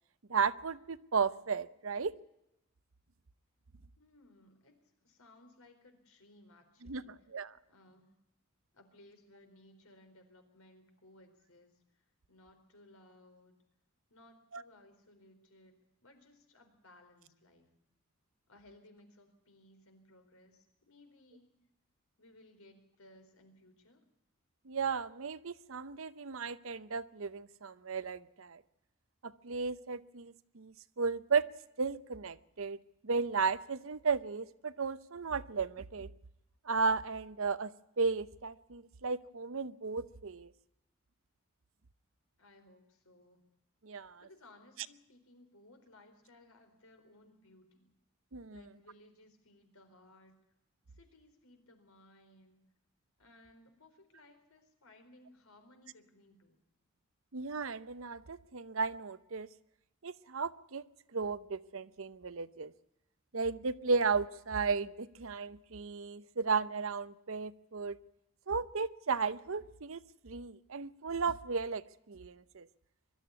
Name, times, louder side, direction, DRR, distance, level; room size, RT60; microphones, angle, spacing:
voice 1, 0.3-2.1 6.8-7.5 14.5-14.6 24.6-28.6 29.2-31.5 31.8-32.8 33.0-36.1 36.6-40.5 43.8-44.2 48.3-48.6 57.3-59.5 60.0-60.8 61.1-62.7 63.3-68.0 68.5-72.7, right 5 dB, 65° right, 15 dB, 0.8 m, -35 dB
voice 2, 4.0-7.3 7.7-8.2 8.7-13.6 14.1-17.7 18.5-21.6 22.2-24.0 42.4-43.5 44.2-47.9 48.5-50.4 50.9-52.6 53.2-56.6, left 1 dB, 75° left, 6 dB, 4.3 m, -61 dB
22.5 x 13.0 x 9.6 m, 0.88 s
head